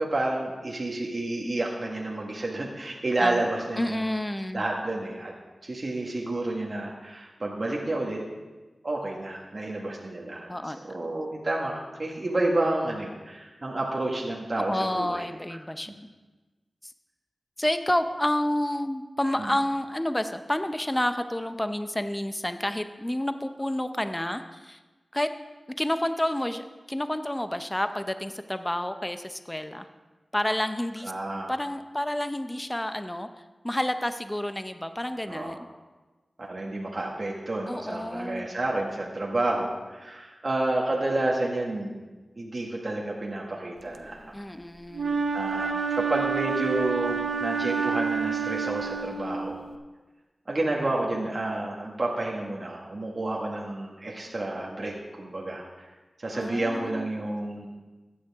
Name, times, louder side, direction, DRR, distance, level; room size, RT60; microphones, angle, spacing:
voice 1, 0.0-4.0 4.5-5.3 5.6-8.2 8.8-10.5 10.9-15.2 19.4-19.5 31.0-31.5 35.3-35.6 36.4-42.0 42.4-44.4 45.3-49.6 50.5-55.9 56.2-57.7, right 2 dB, 45° right, -2 dB, 1.6 m, -30 dB
voice 2, 3.8-4.6 10.5-10.8 11.0-11.2 14.7-15.9 16.8-16.9 17.6-24.8 25.1-25.3 25.7-29.9 30.3-31.1 31.5-33.3 33.6-35.7 37.7-38.5 44.3-45.2 56.3-57.1, left 1 dB, 15° left, 9 dB, 0.6 m, -29 dB
Wind instrument woodwind instrument, 44.9-49.7, right 6 dB, 65° right, 0.7 m, -28 dB
15.0 x 9.6 x 3.6 m, 1.2 s
wide cardioid pair, 55°, 0 cm